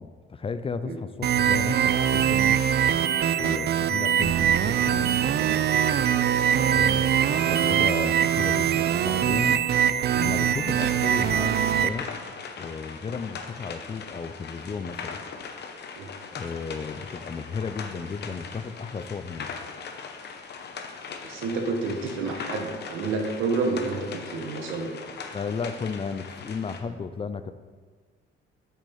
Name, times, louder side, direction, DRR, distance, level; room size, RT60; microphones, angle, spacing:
voice 1, 0.0-2.7 3.3-5.2 6.7-9.7 10.2-12.1 12.6-15.2 16.3-19.5 25.3-27.5, left 5 dB, 30° left, 12 dB, 0.4 m, -34 dB
sound 1, 1.2-11.9, right 9 dB, 55° right, 0.4 m, -22 dB
voice 2, 5.2-5.9 6.2-6.8 16.0-16.1 21.2-24.9, right 3 dB, 90° right, 3 dB, 1.2 m, -30 dB
sound 2, 10.5-26.8, left 5 dB, 55° left, 0.9 m, -40 dB
8.2 x 6.3 x 4.2 m, 1.5 s
cardioid pair, 90°, 20 cm